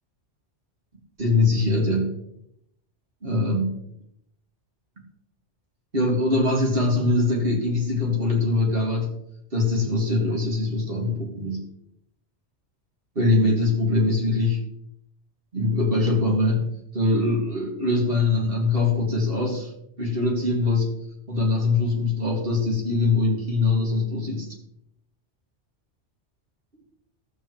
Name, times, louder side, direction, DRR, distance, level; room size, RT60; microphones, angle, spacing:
voice 1, 1.2-2.1 3.2-3.7 5.9-9.1 9.5-11.7 13.2-14.6 15.5-16.7 16.9-19.7 20.0-20.9 21.3-24.5, left 2 dB, 50° right, -1 dB, 2.3 m, -22 dB
14.0 x 7.5 x 3.1 m, 0.76 s
omnidirectional pair, 1.2 m